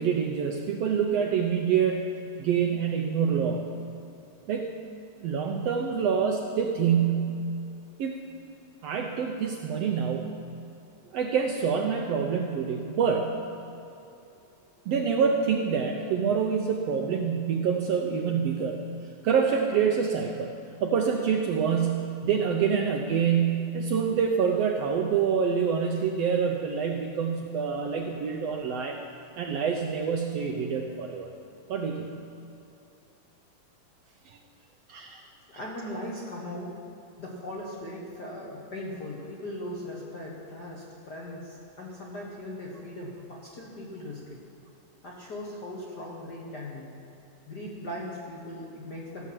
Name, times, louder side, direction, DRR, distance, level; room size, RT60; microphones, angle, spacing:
voice 1, 0.0-3.6 4.5-4.7 5.2-7.4 8.0-8.2 8.8-10.4 11.1-13.4 14.9-18.9 19.2-20.5 20.8-29.0 29.4-31.3 31.7-32.1 34.3-34.4 34.9-35.2, right 6 dB, 75° right, 2 dB, 1.5 m, -26 dB
voice 2, 35.5-36.7 37.2-44.4 45.0-46.9 47.5-49.3, left 1 dB, 50° left, -3 dB, 1.3 m, -39 dB
15.5 x 6.9 x 7.5 m, 2.7 s
omnidirectional pair, 3.5 m